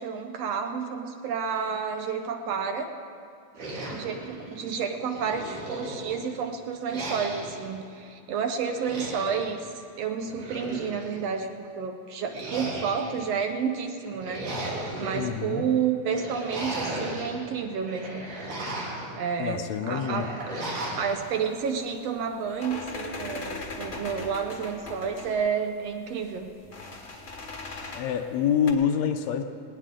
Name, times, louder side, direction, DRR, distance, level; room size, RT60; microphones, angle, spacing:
voice 1, 0.0-2.9 3.9-9.7 10.0-18.3 19.2-20.3 21.0-26.5, right 6 dB, 70° right, 5 dB, 1.8 m, -30 dB
sound 1, 3.6-4.7 5.1-6.3 6.9-7.6 8.7-9.4 10.2-11.2 12.3-13.3 14.0-15.2 16.1-17.3 17.7-19.1 20.0-21.1, right 1 dB, 90° right, 4.4 m, -35 dB
voice 2, 15.1-15.7 19.4-20.3 27.9-29.4, left 8 dB, 75° left, 7 dB, 1.9 m, -26 dB
sound 2, 21.1-28.7, left 3 dB, 35° left, 1.1 m, -40 dB
19.5 x 18.5 x 3.8 m, 2.6 s
omnidirectional pair, 3.4 m